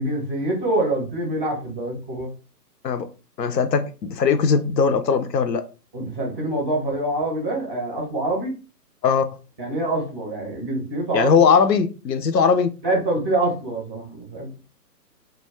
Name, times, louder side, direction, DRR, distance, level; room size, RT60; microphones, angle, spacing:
voice 1, 0.0-2.3 5.9-8.5 9.6-11.3 12.8-14.6, right 2 dB, 10° right, 0.5 m, -25 dB
voice 2, 3.4-5.6 9.0-9.2 11.1-12.7, left 6 dB, 85° left, 0.6 m, -19 dB
2.3 x 2.2 x 3.3 m
figure-of-eight pair, 125°, 49 cm